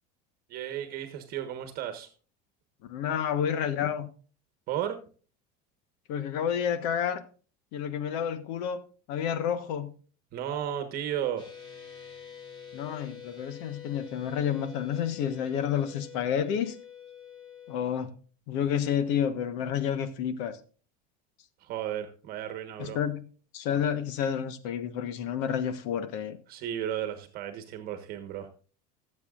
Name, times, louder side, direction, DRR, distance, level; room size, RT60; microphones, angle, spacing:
voice 1, 0.5-2.1 4.7-5.0 10.3-11.5 21.6-23.0 26.5-28.5, right 10 dB, 45° right, 1.4 m, -34 dB
voice 2, 2.9-4.1 6.1-7.2 7.7-8.8 9.1-9.9 12.7-16.8 17.7-18.1 18.5-20.5 22.8-23.3 23.5-26.4, left 8 dB, 75° left, 1.3 m, -30 dB
sound 1, 11.4-18.1, left 8 dB, 25° left, 2.7 m, -47 dB
20.5 x 8.0 x 2.5 m
cardioid pair, 150°, 21 cm